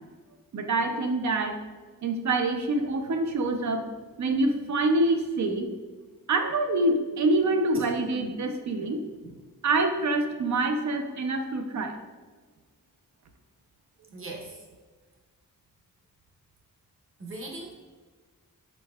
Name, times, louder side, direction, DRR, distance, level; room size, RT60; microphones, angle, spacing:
voice 1, 0.5-1.6 2.0-3.9 4.2-5.7 6.3-9.0 9.6-12.0, right 2 dB, 55° right, 6 dB, 0.5 m, -26 dB
voice 2, 14.1-14.6 17.2-17.7, right 2 dB, 40° right, 0 dB, 0.9 m, -39 dB
5.1 x 4.4 x 2.3 m, 1.4 s
wide cardioid pair, 130°, 34 cm